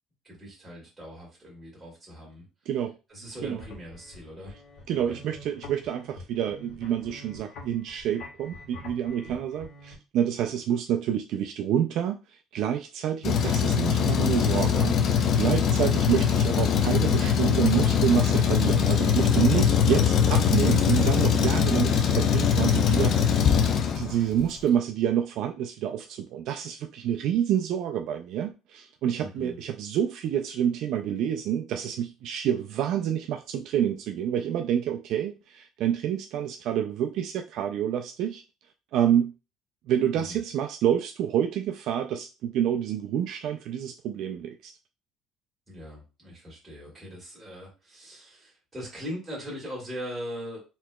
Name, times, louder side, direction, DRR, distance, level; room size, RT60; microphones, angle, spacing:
voice 1, 0.2-2.5 3.1-4.5 4.9-5.2 9.2-9.4 29.2-29.6 40.1-40.4 45.7-50.6, equal, 15° right, 2.1 m, -40 dB
voice 2, 2.7-3.0 3.4-3.6 4.9-23.6 23.9-38.4 38.9-39.3 39.9-44.7, right 9 dB, 60° right, 0.3 m, -28 dB
sound 1, 3.3-9.9, left 2 dB, 60° left, 1.3 m, -46 dB
Truck, 13.2-24.4, left 7 dB, 45° left, 0.4 m, -22 dB
4.2 x 2.8 x 2.2 m
cardioid pair, 155°, 0 cm